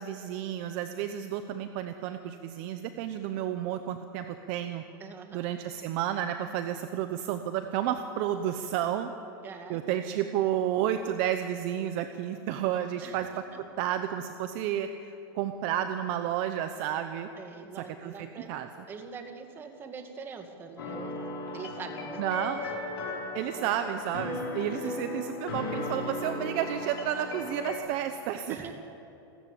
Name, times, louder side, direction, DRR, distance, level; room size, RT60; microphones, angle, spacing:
voice 1, 0.0-4.8 5.3-9.1 9.7-13.4 13.8-17.3 17.7-18.9 22.2-22.6 23.3-28.7, right 10 dB, 40° right, 8 dB, 0.9 m, -31 dB
voice 2, 5.0-5.5 9.4-9.8 10.1-10.2 13.0-13.6 17.4-18.5 18.9-21.2 21.5-22.2 22.5-22.6 24.8-25.1 28.5-28.7, right 5 dB, 15° right, 5 dB, 1.9 m, -44 dB
sound 1, 20.8-27.8, left 2 dB, 80° left, 5.3 m, -36 dB
29.0 x 13.5 x 8.6 m, 2.9 s
supercardioid pair, 165°, 13 cm